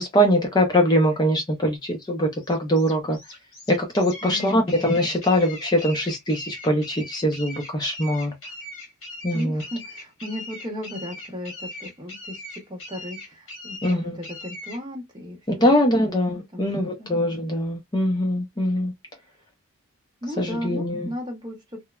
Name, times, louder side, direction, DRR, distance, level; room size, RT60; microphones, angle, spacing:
voice 1, 0.0-3.2 3.7-8.3 9.2-9.6 13.8-14.2 15.6-18.9 20.4-21.1, equal, 20° left, 0.4 m, -22 dB
sound 1, 2.4-14.8, left 1 dB, 65° left, 1.6 m, -40 dB
voice 2, 4.2-4.7 9.3-15.4 15.9-16.2 16.5-17.1 20.2-21.8, left 1 dB, 20° right, 0.8 m, -35 dB
3.0 x 2.0 x 2.2 m
head